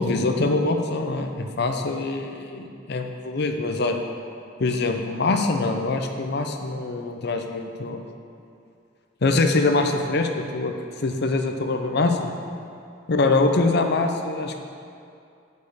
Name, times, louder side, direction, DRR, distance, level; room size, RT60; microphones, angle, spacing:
voice 1, 0.0-4.0 4.6-8.0 9.2-10.7 11.0-12.3 13.1-14.6, left 3 dB, 60° left, 5 dB, 0.6 m, -24 dB
6.1 x 5.4 x 6.7 m, 2.5 s
head